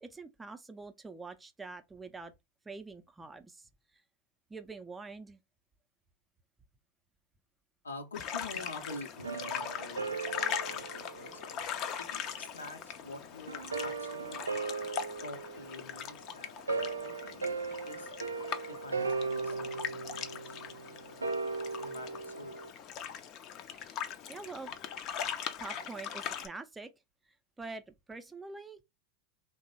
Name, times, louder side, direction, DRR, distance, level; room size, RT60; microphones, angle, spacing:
voice 1, 0.0-2.3 2.7-3.7 4.5-5.4 23.8-24.0 24.3-24.7 25.6-26.9 27.6-28.8, right 3 dB, 15° right, 0.4 m, -45 dB
voice 2, 7.8-11.4 12.0-14.4 15.2-18.1 18.6-21.0 21.8-22.6, left 2 dB, 85° left, 0.6 m, -47 dB
sound 1, 8.1-26.5, left 8 dB, 45° left, 0.4 m, -40 dB
sound 2, 9.2-12.1 13.5-22.7, right 4 dB, 85° right, 0.3 m, -38 dB
2.9 x 2.0 x 4.0 m
figure-of-eight pair, 85°, 0 cm